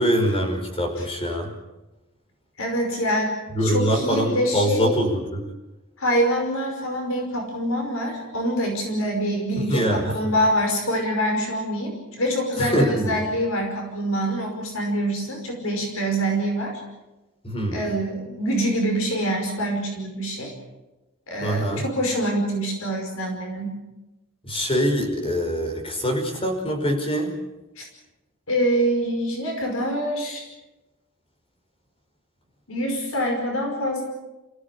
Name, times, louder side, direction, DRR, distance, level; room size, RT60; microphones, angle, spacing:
voice 1, 0.0-1.5 3.5-5.5 9.6-10.3 12.6-13.2 17.4-17.9 21.4-21.8 24.4-27.3, equal, 25° left, 3 dB, 5.2 m, -24 dB
voice 2, 2.6-3.3 3.6-4.9 6.0-16.8 17.7-20.5 21.3-23.7 27.8-27.9 28.5-30.4 32.7-34.0, equal, 75° left, 2 dB, 5.4 m, -25 dB
27.5 x 16.5 x 8.5 m, 1.0 s
head